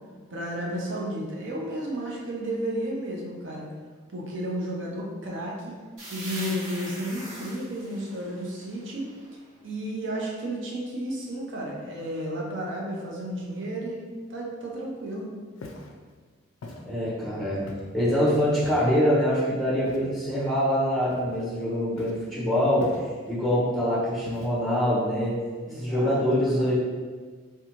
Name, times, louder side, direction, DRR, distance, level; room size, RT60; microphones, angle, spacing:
voice 1, 0.3-3.7 4.1-5.8 6.1-9.1 9.6-15.3 25.7-26.2 26.5-26.7, right 1 dB, 65° right, -2 dB, 0.6 m, -32 dB
sound 1, 6.0-9.6, right 1 dB, 80° right, 1.0 m, -41 dB
Walk footsteps, 15.6-15.9 16.6-16.8 17.7-18.0 18.6-19.0 19.8-20.2 21.1-21.6 22.0-22.3 22.8-23.3 24.3-24.7, left 2 dB, 75° left, 0.4 m, -42 dB
voice 2, 16.8-22.9 23.3-25.4 25.7-26.7, equal, ahead, -9 dB, 0.8 m, -24 dB
2.7 x 2.2 x 2.8 m, 1.5 s
head